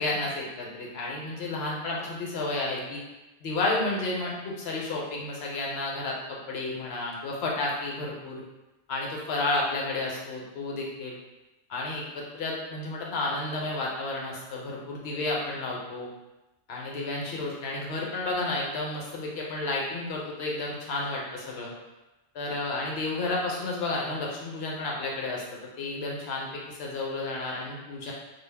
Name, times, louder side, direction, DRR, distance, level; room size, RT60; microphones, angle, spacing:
voice 1, 0.0-3.0 3.4-8.4 8.9-11.1 11.7-16.1 16.7-21.7 22.3-25.4 25.8-28.1, left 2 dB, 70° left, -3 dB, 0.9 m, -31 dB
2.2 x 2.0 x 3.2 m, 1.0 s
omnidirectional pair, 1.1 m